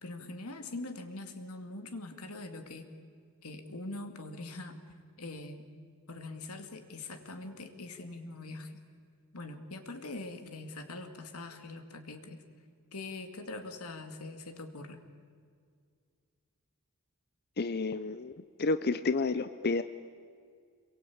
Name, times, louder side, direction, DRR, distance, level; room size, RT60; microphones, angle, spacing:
voice 1, 0.0-2.9 3.4-4.8 5.2-5.7 6.1-8.8 9.3-12.4 12.9-15.0, left 2 dB, 90° left, 6 dB, 2.4 m, -43 dB
voice 2, 17.6-18.3 18.6-19.8, left 3 dB, 45° left, 11 dB, 0.6 m, -30 dB
26.5 x 22.5 x 8.7 m, 2.2 s
head